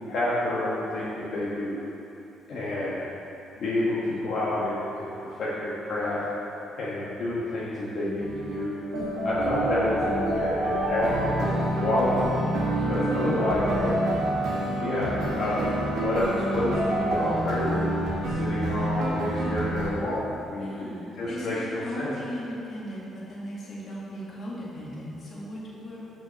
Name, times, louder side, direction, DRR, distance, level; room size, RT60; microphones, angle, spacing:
voice 1, 0.1-1.8 2.5-3.0 3.6-6.2 6.8-8.7 9.2-12.3 12.8-14.0 14.8-17.8 18.3-20.9 21.2-22.1, left 1 dB, 55° left, -8 dB, 1.4 m, -29 dB
sound 1, 8.2-19.9, right 1 dB, 85° right, 1.9 m, -28 dB
voice 2, 12.7-14.2 20.6-26.0, equal, 40° left, -6 dB, 2.0 m, -38 dB
6.5 x 6.3 x 6.4 m, 2.9 s
cardioid pair, 150°, 0 cm